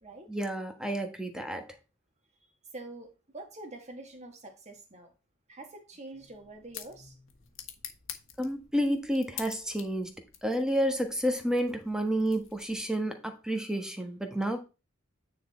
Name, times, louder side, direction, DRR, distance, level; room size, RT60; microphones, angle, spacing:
voice 1, 0.3-1.6 8.4-10.2 10.4-14.6, equal, 5° right, 1.2 m, -30 dB
voice 2, 2.7-5.1 5.5-7.2, right 2 dB, 35° right, 1.9 m, -46 dB
sound 1, 6.1-13.0, left 10 dB, 80° left, 1.3 m, -48 dB
9.3 x 4.1 x 4.4 m
head